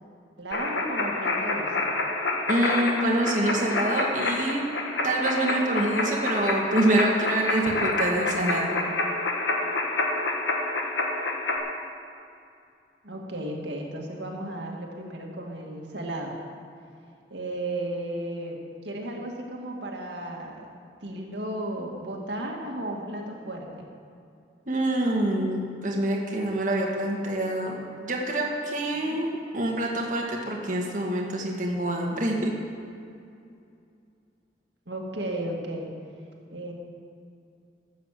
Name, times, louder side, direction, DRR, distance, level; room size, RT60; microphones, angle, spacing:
voice 1, 0.4-1.9 13.0-16.4 17.3-20.7 21.0-23.9 28.9-29.2 34.9-35.9 36.5-36.7, right 1 dB, 80° right, 0 dB, 2.1 m, -34 dB
sound 1, 0.5-11.6, left 2 dB, 90° left, 1.5 m, -28 dB
voice 2, 2.5-4.6 5.0-8.8 24.7-27.8 28.0-32.5, right 1 dB, 45° right, -1 dB, 1.7 m, -26 dB
13.0 x 8.5 x 7.5 m, 2.5 s
head